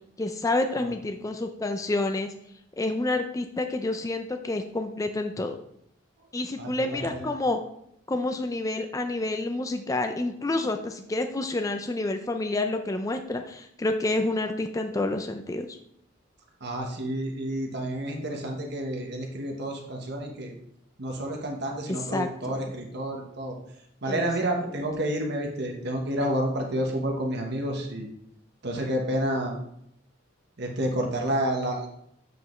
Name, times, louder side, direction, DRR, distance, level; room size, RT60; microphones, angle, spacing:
voice 1, 0.2-2.3 2.8-5.6 6.3-7.6 8.1-15.8 21.9-22.6 24.1-24.3 24.6-24.7, left 2 dB, 15° left, 6 dB, 0.4 m, -29 dB
voice 2, 6.6-7.3 16.6-20.5 21.0-23.6 24.0-28.1 28.6-29.5 30.6-31.9, right 1 dB, 55° right, 1 dB, 1.2 m, -30 dB
7.8 x 4.8 x 3.2 m, 0.73 s
head